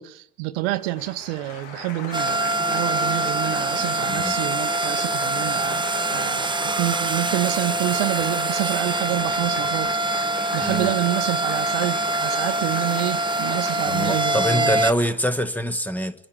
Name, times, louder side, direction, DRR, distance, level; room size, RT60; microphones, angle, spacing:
voice 1, 0.0-5.9 6.1-14.8, right 17 dB, 80° right, 0.9 m, -28 dB
Applause, 0.7-15.5, left 6 dB, 85° left, 2.0 m, -37 dB
sound 1, 2.1-14.9, right 2 dB, 15° right, 0.7 m, -24 dB
voice 2, 10.6-10.9 13.9-16.1, equal, 5° left, 1.4 m, -25 dB
26.0 x 10.0 x 9.9 m
hypercardioid pair, 70°, 32 cm